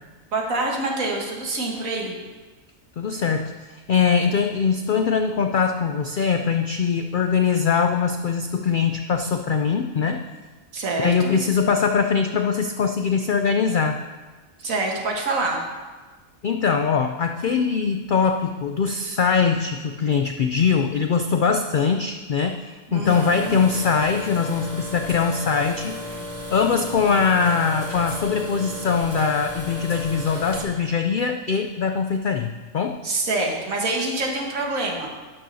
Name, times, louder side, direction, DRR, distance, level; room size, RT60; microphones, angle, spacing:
voice 1, 0.3-2.2 10.7-11.4 14.6-15.6 22.9-23.6 33.0-35.1, right 2 dB, 85° right, 0 dB, 1.8 m, -26 dB
voice 2, 3.0-10.2 11.0-14.0 16.4-26.0 26.5-33.0, left 6 dB, 75° left, 6 dB, 0.4 m, -22 dB
sound 1, 23.0-30.6, left 1 dB, 30° right, 2.0 m, -34 dB
12.0 x 9.3 x 2.7 m, 1.3 s
omnidirectional pair, 1.4 m